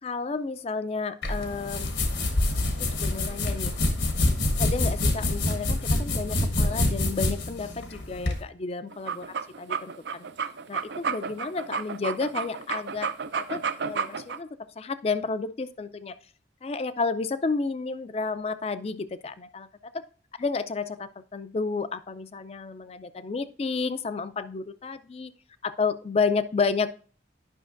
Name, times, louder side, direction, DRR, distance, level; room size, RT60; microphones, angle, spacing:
voice 1, 0.0-1.9 2.8-3.7 4.6-9.3 9.6-10.3 10.7-13.1 13.4-14.5 14.8-16.2 16.6-19.7 20.4-25.3 25.6-26.9, left 4 dB, 35° left, 14 dB, 0.4 m, -31 dB
sound 1, 1.2-8.4, left 2 dB, 75° left, 1.1 m, -26 dB
sound 2, 8.9-14.4, right 6 dB, 65° right, 0.4 m, -31 dB
10.0 x 5.9 x 2.5 m, 0.41 s
head